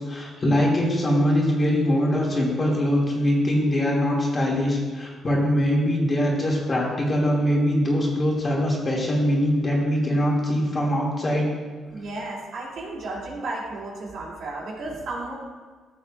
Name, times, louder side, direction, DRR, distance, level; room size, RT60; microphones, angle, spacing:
voice 1, 0.1-11.5, equal, 35° left, -3 dB, 2.3 m, -22 dB
voice 2, 11.9-15.3, right 2 dB, 70° right, -4 dB, 2.8 m, -33 dB
14.5 x 6.7 x 2.5 m, 1.5 s
cardioid pair, 90°, 0 cm